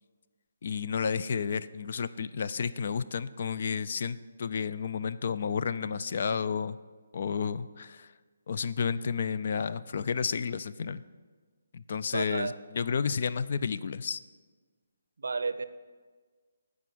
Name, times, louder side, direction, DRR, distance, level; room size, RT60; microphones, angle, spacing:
voice 1, 0.6-6.8 7.1-8.1 8.5-11.0 11.7-14.2, left 6 dB, 55° left, 14 dB, 0.3 m, -31 dB
voice 2, 12.1-12.5 15.2-15.7, right 4 dB, 70° right, 13 dB, 0.5 m, -31 dB
8.1 x 4.8 x 7.1 m, 1.4 s
figure-of-eight pair, 150°, 0 cm